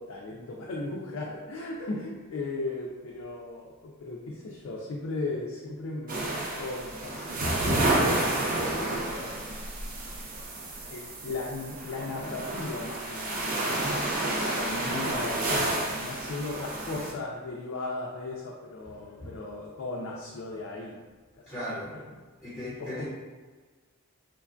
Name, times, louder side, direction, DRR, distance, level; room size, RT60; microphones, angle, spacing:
voice 1, 0.0-6.3 6.6-9.6 10.9-13.5 14.3-21.0 23.0-23.1, left 2 dB, 65° left, -3 dB, 0.3 m, -36 dB
sound 1, 6.1-17.1, right 2 dB, 40° right, 0.4 m, -30 dB
voice 2, 21.5-21.9 22.4-23.0, left 1 dB, 10° left, -12 dB, 0.9 m, -37 dB
3.1 x 2.2 x 2.4 m, 1.4 s
head